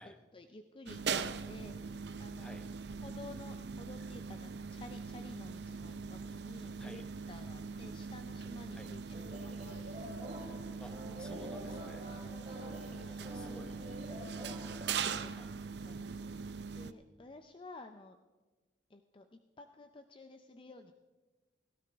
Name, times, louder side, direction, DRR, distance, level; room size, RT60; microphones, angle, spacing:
voice 1, 0.0-2.6 3.0-9.0 9.4-10.2 12.1-15.3 15.8-16.2 16.7-18.2 18.9-20.9, left 2 dB, 30° left, 7 dB, 0.5 m, -53 dB
sound 1, 0.9-16.9, right 5 dB, 65° right, 0.6 m, -41 dB
sound 2, 9.1-15.2, equal, 35° right, 5.2 m, -47 dB
voice 2, 10.8-12.0 13.0-13.7 15.3-15.7, left 1 dB, 5° left, 6 dB, 1.0 m, -53 dB
17.5 x 16.0 x 3.5 m, 1.2 s
head